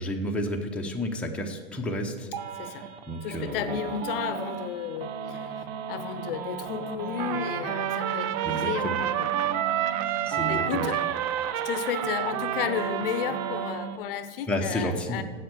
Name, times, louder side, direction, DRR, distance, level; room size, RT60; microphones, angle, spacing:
voice 1, 0.0-3.8 8.4-9.0 10.2-10.9 14.5-15.2, equal, 5° left, 0 dB, 0.9 m, -31 dB
sound 1, 2.3-14.0, right 7 dB, 60° right, 1.1 m, -36 dB
voice 2, 2.5-2.9 3.2-9.5 10.1-10.2 10.5-11.0 11.5-15.2, left 9 dB, 55° left, 11 dB, 0.8 m, -33 dB
Trumpet, 7.2-13.9, right 11 dB, 35° right, 0.4 m, -30 dB
7.6 x 7.3 x 8.1 m, 1.5 s
hypercardioid pair, 120°, 34 cm